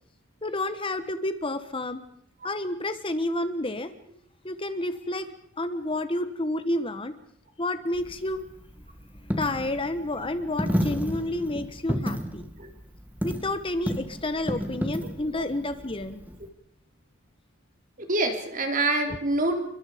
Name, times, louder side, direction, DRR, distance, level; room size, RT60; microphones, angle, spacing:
voice 1, 0.4-2.0 2.4-3.9 4.4-5.3 5.6-7.1 7.6-8.4 9.2-12.4 13.2-16.2, left 1 dB, 25° left, 10 dB, 1.2 m, -30 dB
Coin (dropping), 7.9-16.5, equal, 10° right, 1.8 m, -32 dB
voice 2, 18.0-19.7, right 2 dB, 40° right, 4 dB, 4.0 m, -26 dB
29.5 x 24.0 x 5.1 m, 0.68 s
head